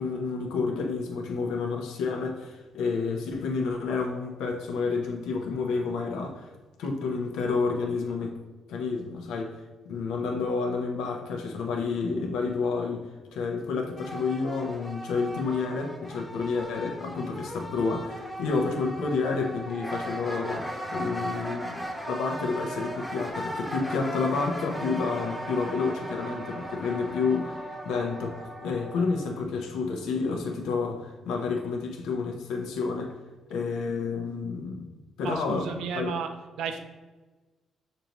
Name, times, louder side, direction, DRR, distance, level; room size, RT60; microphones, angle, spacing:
voice 1, 0.0-6.5 6.8-8.3 8.7-9.6 9.8-27.6 27.8-33.1 33.5-34.9 35.2-36.1, left 4 dB, 85° left, 2 dB, 0.7 m, -30 dB
sound 1, 14.0-29.4, equal, 5° left, 1.0 m, -37 dB
voice 2, 35.2-36.3 36.6-36.8, right 6 dB, 85° right, 6 dB, 0.4 m, -32 dB
6.6 x 2.7 x 2.9 m, 1.2 s
cardioid pair, 90°, 0 cm